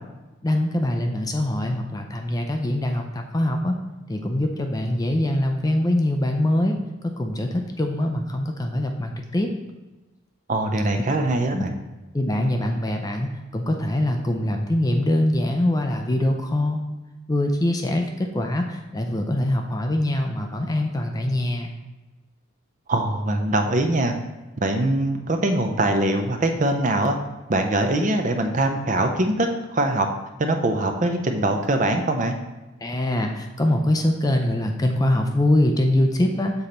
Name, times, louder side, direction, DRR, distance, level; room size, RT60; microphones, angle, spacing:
voice 1, 0.4-3.8 4.1-9.5 11.5-11.7 12.1-16.8 17.3-21.8 32.8-36.5, left 1 dB, 15° left, 3 dB, 0.4 m, -23 dB
voice 2, 10.5-11.7 22.9-24.1 24.6-27.2 27.5-30.1 30.4-32.3, right 1 dB, 35° right, 5 dB, 0.5 m, -22 dB
6.9 x 3.9 x 4.2 m, 1.1 s
head